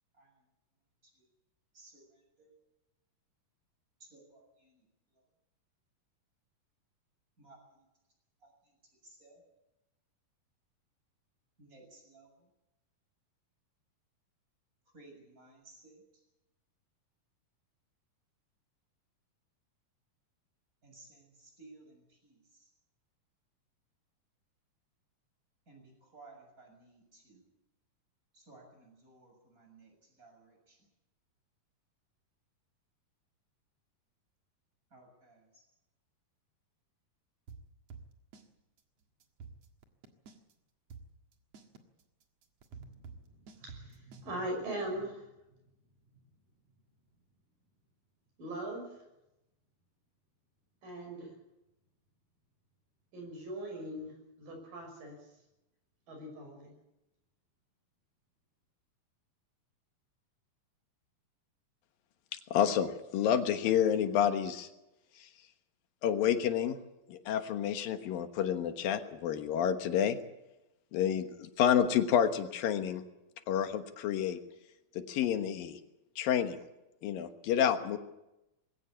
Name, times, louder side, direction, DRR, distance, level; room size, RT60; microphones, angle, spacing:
voice 1, 0.1-0.4 1.0-1.3 1.7-2.5 4.0-5.2 7.4-7.9 8.4-8.8 9.0-9.4 11.6-12.5 14.9-16.2 20.8-22.7 25.7-27.5 28.3-30.9 34.9-35.7, right 2 dB, 20° right, 2 dB, 7.4 m, -58 dB
sound 1, 37.5-38.5 38.8-38.9 39.2-40.5 40.9-44.3, right 5 dB, 50° right, 2.6 m, -49 dB
voice 2, 42.7-45.3 48.4-48.9 50.8-51.3 53.1-55.3 56.1-56.7, right 1 dB, 70° right, 2 dB, 7.6 m, -41 dB
voice 3, 62.5-64.7 65.2-65.3 66.0-66.8 67.1-70.2 70.9-73.0 73.5-74.4 74.9-75.8 76.2-76.6 77.0-78.0, left 9 dB, 80° left, 8 dB, 3.1 m, -29 dB
21.5 x 17.0 x 8.5 m, 0.93 s
omnidirectional pair, 4.0 m